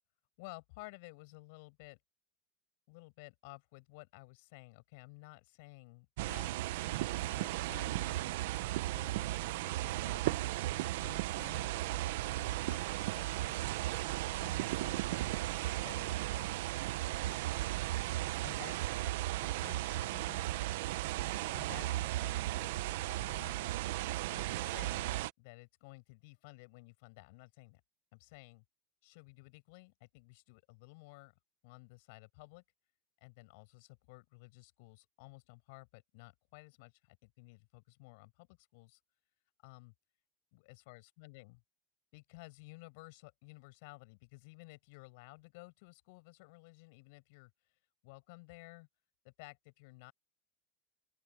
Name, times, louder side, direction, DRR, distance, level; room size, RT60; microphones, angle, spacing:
voice 1, 0.4-2.0 2.9-6.5 7.2-8.4 8.9-13.8 14.2-16.6 17.2-17.6 18.4-20.9 21.5-23.6 24.3-27.8 28.1-28.6 29.0-31.3 31.6-32.6 33.2-39.0 39.6-39.9 40.9-41.6 42.1-47.5 48.0-48.9 49.2-50.1, left 27 dB, 70° left, 7.7 m, -55 dB
sound 1, 6.2-25.3, right 16 dB, 80° right, 0.9 m, -35 dB
open air
supercardioid pair, 130°, 0 cm